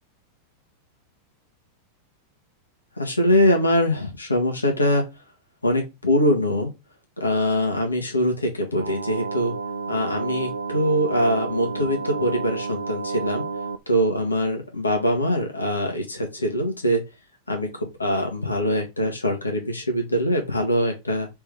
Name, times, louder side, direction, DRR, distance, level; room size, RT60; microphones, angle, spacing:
voice 1, 3.0-5.0 5.6-6.7 7.2-9.5 9.9-13.5 13.9-17.0 17.5-21.3, equal, 80° left, 2 dB, 1.3 m, -23 dB
sound 1, 8.8-13.8, right 4 dB, 85° right, 0.3 m, -30 dB
3.4 x 3.4 x 3.3 m, 0.24 s
figure-of-eight pair, 90°, 0 cm